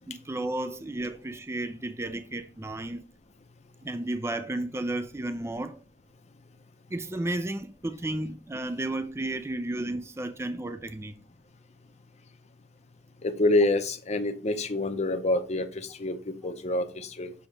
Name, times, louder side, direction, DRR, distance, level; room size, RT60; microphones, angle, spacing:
voice 1, 0.1-3.0 3.8-5.8 6.9-11.2, right 1 dB, 15° right, 0.4 m, -33 dB
voice 2, 13.2-17.3, left 2 dB, 40° left, 0.7 m, -27 dB
7.1 x 3.0 x 4.9 m
head